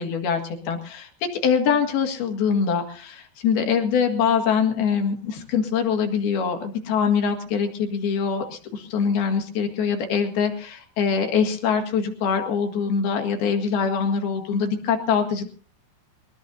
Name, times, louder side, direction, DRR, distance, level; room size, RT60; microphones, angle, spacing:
voice 1, 0.0-15.4, left 6 dB, 65° left, 5 dB, 3.6 m, -23 dB
22.0 x 19.5 x 2.6 m, 0.39 s
omnidirectional pair, 5.2 m